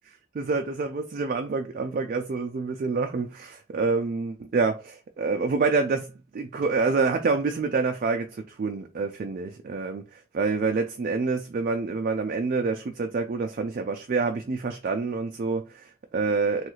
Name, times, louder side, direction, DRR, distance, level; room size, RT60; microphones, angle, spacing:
voice 1, 0.3-15.7 16.1-16.7, right 4 dB, 45° right, 0.3 m, -27 dB
3.1 x 2.3 x 3.1 m
head